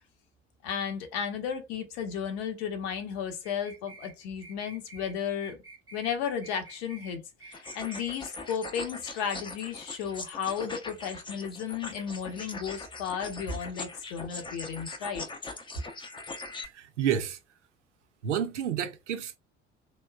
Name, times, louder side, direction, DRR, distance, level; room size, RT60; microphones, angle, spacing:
voice 1, 0.6-5.6 5.9-15.2, left 7 dB, 60° left, 0.8 m, -34 dB
sound 1, 3.4-4.1 4.4-5.1 5.4-6.1 6.4-7.1 7.4-8.1, right 3 dB, 10° right, 0.9 m, -49 dB
sound 2, 7.5-16.7, left 3 dB, 15° left, 0.5 m, -41 dB
voice 2, 16.6-17.4 18.2-19.4, right 9 dB, 80° right, 0.5 m, -30 dB
2.9 x 2.1 x 2.2 m
figure-of-eight pair, 55°, 35 cm